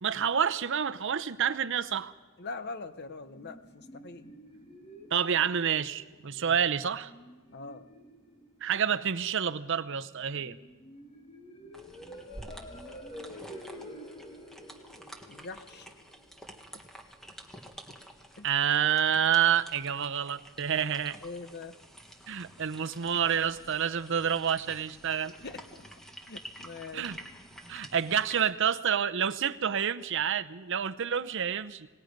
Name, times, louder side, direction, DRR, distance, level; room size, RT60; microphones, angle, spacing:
voice 1, 0.0-2.1 5.1-7.1 8.6-10.6 18.4-21.2 22.3-25.3 26.9-27.2 27.7-31.9, right 8 dB, 60° right, 12 dB, 0.7 m, -28 dB
voice 2, 2.4-4.3 6.3-6.6 7.5-7.9 15.3-15.9 18.4-18.5 21.2-21.8 25.4-25.8 26.3-27.1, left 3 dB, 50° left, 11 dB, 1.0 m, -42 dB
sound 1, 2.9-16.9, equal, 30° left, 1.9 m, -49 dB
sound 2, 11.7-28.5, equal, ahead, 1.7 m, -50 dB
27.0 x 19.5 x 5.3 m, 1.2 s
head